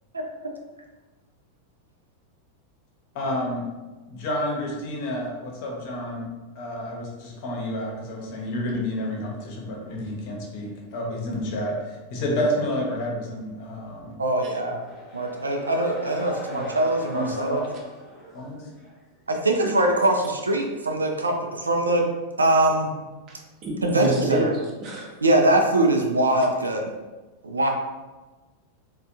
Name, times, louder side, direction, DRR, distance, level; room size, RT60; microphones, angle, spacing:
voice 1, 3.1-3.6 4.1-6.3 6.5-14.2 16.5-16.7 17.1-17.6 18.3-18.6, left 1 dB, 45° left, -1 dB, 0.8 m, -30 dB
voice 2, 14.2-14.8 15.1-17.6 19.3-22.1 22.4-22.9 23.8-24.5 25.2-26.9 27.4-27.7, right 1 dB, 75° right, 2 dB, 0.4 m, -22 dB
sound 1, 14.5-19.0, equal, 20° left, 1.0 m, -39 dB
voice 3, 23.3-25.1, right 2 dB, 35° right, 0 dB, 0.7 m, -28 dB
3.3 x 2.2 x 2.8 m, 1.2 s
figure-of-eight pair, 90°, 0 cm